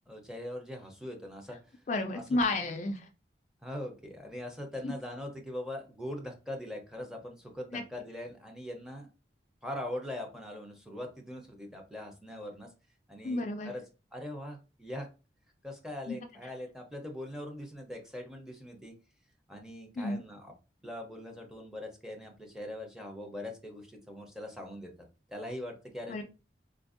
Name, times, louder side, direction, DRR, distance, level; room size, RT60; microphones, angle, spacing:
voice 1, 0.1-1.6 2.1-2.4 3.6-9.1 9.6-12.7 13.1-13.8 14.1-15.1 15.6-18.9 19.5-20.5 20.8-24.9 25.3-26.2, left 1 dB, 5° right, 1 dB, 0.6 m, -41 dB
voice 2, 1.9-3.1 4.8-4.9 7.7-7.8 13.2-13.7 16.1-16.2 20.0-20.2 26.1-26.2, left 2 dB, 40° left, 6 dB, 0.3 m, -31 dB
4.0 x 2.5 x 2.5 m, 0.31 s
head